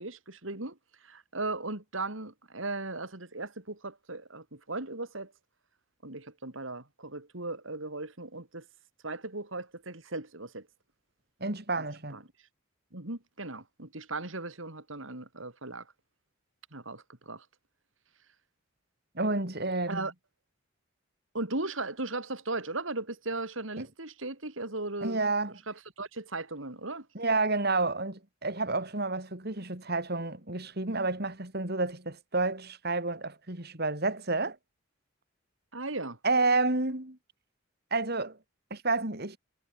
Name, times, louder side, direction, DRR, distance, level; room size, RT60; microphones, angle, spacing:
voice 1, 0.0-5.3 6.0-8.6 9.0-10.7 11.8-11.9 12.1-12.2 12.9-15.9 16.7-17.5 19.9-20.1 21.3-25.2 25.7-27.1 35.7-36.2, right 2 dB, 70° right, 3.8 m, -37 dB
voice 2, 11.4-12.2 19.2-20.0 23.8-23.9 25.0-25.5 27.2-34.6 36.2-37.2 37.9-38.4 38.7-39.4, right 3 dB, 50° right, 3.5 m, -30 dB
head